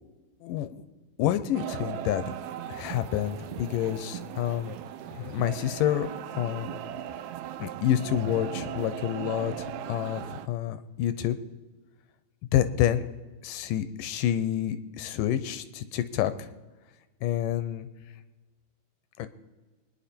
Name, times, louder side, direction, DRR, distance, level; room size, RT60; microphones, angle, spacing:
voice 1, 0.4-0.8 1.2-2.3 2.7-4.8 5.2-6.1 6.3-6.8 7.6-11.4 12.5-13.0 13.4-16.5 17.2-17.9 19.2-19.3, left 11 dB, 80° left, 12 dB, 2.3 m, -28 dB
sound 1, 1.5-10.5, right 11 dB, 90° right, 1.7 m, -38 dB
23.5 x 9.9 x 4.4 m, 1.2 s
omnidirectional pair, 4.0 m